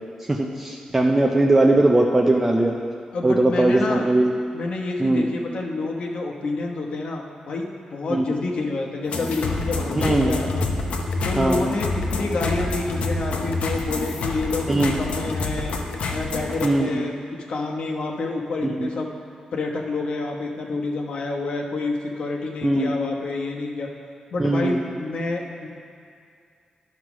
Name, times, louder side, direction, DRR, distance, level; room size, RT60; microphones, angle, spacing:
voice 1, 0.3-2.8 3.2-4.3 5.0-5.3 8.1-8.2 9.9-10.3 11.4-11.6 14.7-14.9 16.6-16.9 18.8-18.9 22.6-22.9 24.4-24.8, right 2 dB, 15° right, 1 dB, 0.5 m, -19 dB
voice 2, 3.1-4.1 4.5-10.7 11.2-15.8 16.1-19.1 19.5-23.9 24.3-25.7, left 3 dB, 60° left, 0 dB, 1.1 m, -28 dB
sound 1, 9.1-16.7, left 3 dB, 75° left, 0.8 m, -27 dB
11.5 x 4.6 x 6.1 m, 2.3 s
wide cardioid pair, 145°, 2 cm